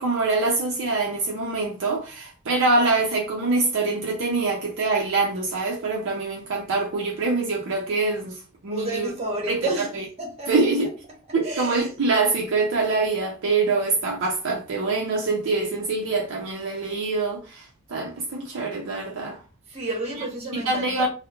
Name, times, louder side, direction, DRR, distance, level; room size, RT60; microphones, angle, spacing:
voice 1, 0.0-9.1 9.5-10.0 10.5-10.9 11.3-19.4 20.5-21.1, right 3 dB, 60° right, 0.5 m, -24 dB
voice 2, 8.7-10.5 11.4-11.9 19.7-21.1, right 2 dB, 30° right, 0.9 m, -30 dB
2.9 x 2.0 x 2.3 m
head